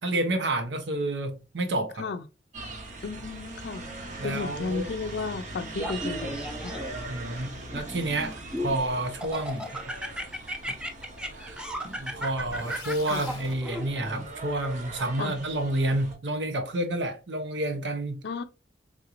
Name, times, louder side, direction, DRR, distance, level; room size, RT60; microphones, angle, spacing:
voice 1, 0.0-2.1 4.2-4.9 7.1-9.9 10.7-10.8 11.3-18.2, right 1 dB, 85° right, 0.8 m, -30 dB
sound 1, 2.5-16.1, right 2 dB, 45° right, 0.7 m, -41 dB
voice 2, 3.0-3.9 4.2-6.7 13.1-13.2 15.2-15.3 18.2-18.4, left 4 dB, 65° left, 0.4 m, -33 dB
Laughter, 5.8-7.1 7.7-8.8 9.2-14.2, equal, 5° right, 0.5 m, -35 dB
sound 2, 12.4-13.6, left 3 dB, 25° left, 0.9 m, -43 dB
3.6 x 2.5 x 2.9 m
head